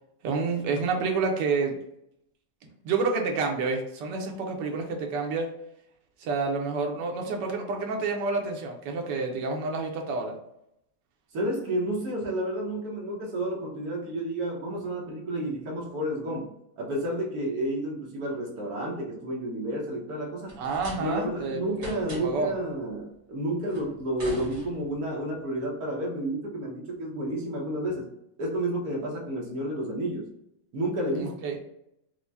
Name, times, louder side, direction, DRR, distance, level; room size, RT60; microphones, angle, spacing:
voice 1, 0.2-1.8 2.8-5.5 6.2-10.4 20.6-21.7 22.1-22.5 31.2-31.6, right 4 dB, 80° right, 2 dB, 1.3 m, -29 dB
voice 2, 11.3-20.6 21.0-28.1 28.4-30.3 30.7-31.4, right 1 dB, 60° right, -1 dB, 1.3 m, -31 dB
sound 1, 20.5-21.4 21.7-22.5 23.7-25.1, right 1 dB, 35° right, 1.2 m, -41 dB
4.6 x 2.1 x 2.7 m, 0.80 s
omnidirectional pair, 1.9 m